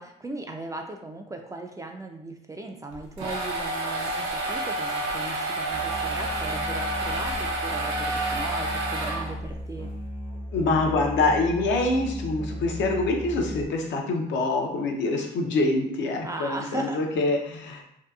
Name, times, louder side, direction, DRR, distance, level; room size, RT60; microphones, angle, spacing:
voice 1, 0.0-9.9 16.2-17.0, right 2 dB, 15° right, 3 dB, 0.3 m, -37 dB
sound 1, 2.9-9.6, right 2 dB, 85° right, 0.6 m, -29 dB
Musical instrument, 5.7-13.6, equal, 25° left, 0.6 m, -36 dB
voice 2, 10.5-17.9, left 2 dB, 65° left, 2 dB, 0.6 m, -25 dB
2.7 x 2.3 x 2.3 m, 0.74 s
supercardioid pair, 75°, 20 cm